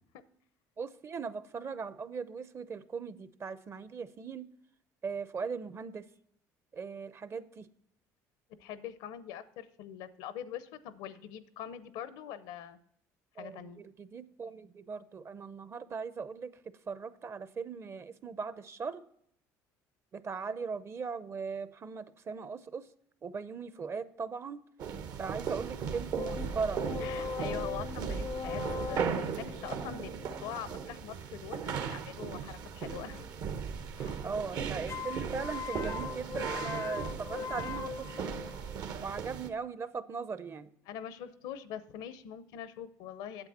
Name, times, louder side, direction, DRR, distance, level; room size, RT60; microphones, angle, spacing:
voice 1, 0.8-4.5 5.0-6.0 6.7-7.7 13.4-16.5 16.9-19.0 20.1-22.9 23.2-24.6 25.2-26.8 34.2-38.3 39.0-40.7, right 5 dB, 35° right, 15 dB, 0.6 m, -39 dB
voice 2, 8.6-12.8 13.4-13.8 27.0-33.3 33.9-34.2 40.9-43.5, left 9 dB, 80° left, 14 dB, 0.7 m, -43 dB
sound 1, 24.8-39.5, right 7 dB, 60° right, 1.0 m, -37 dB
sound 2, 26.2-31.5 34.9-38.8, left 6 dB, 40° left, 0.4 m, -40 dB
8.9 x 7.6 x 4.3 m, 0.68 s
supercardioid pair, 90°, 7 cm